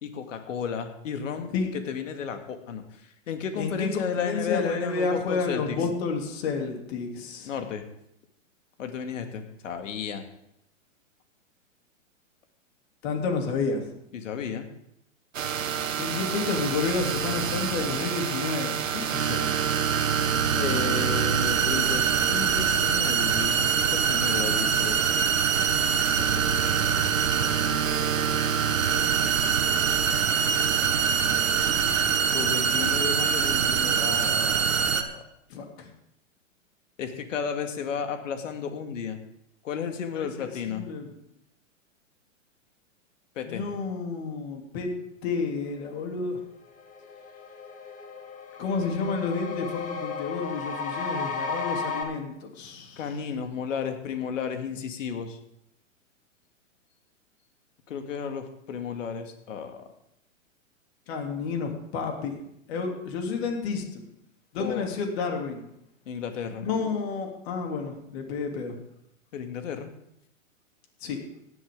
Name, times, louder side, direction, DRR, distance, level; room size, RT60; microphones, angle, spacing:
voice 1, 0.0-2.8 3.3-5.8 7.5-7.8 8.8-10.2 14.1-14.7 20.6-25.0 32.3-35.2 37.0-39.2 39.6-40.8 43.4-43.6 53.0-55.4 57.9-59.8 64.6-64.9 66.1-66.7 69.3-69.9, left 7 dB, 70° left, 6 dB, 2.3 m, -33 dB
voice 2, 3.6-3.9 4.2-7.5 13.0-13.9 16.0-19.5 35.5-35.9 40.1-40.3 40.7-41.0 43.5-44.9 45.2-46.4 48.6-53.0 61.1-62.4 62.7-64.0 64.5-65.7 66.6-68.8 71.0-71.2, left 4 dB, 50° left, 2 dB, 3.4 m, -30 dB
sound 1, 15.3-35.0, right 7 dB, 80° right, 1.6 m, -24 dB
sound 2, 46.3-46.4 46.7-52.0, left 4 dB, 20° left, 2.4 m, -34 dB
17.0 x 10.5 x 3.9 m, 0.77 s
hypercardioid pair, 130°, 39 cm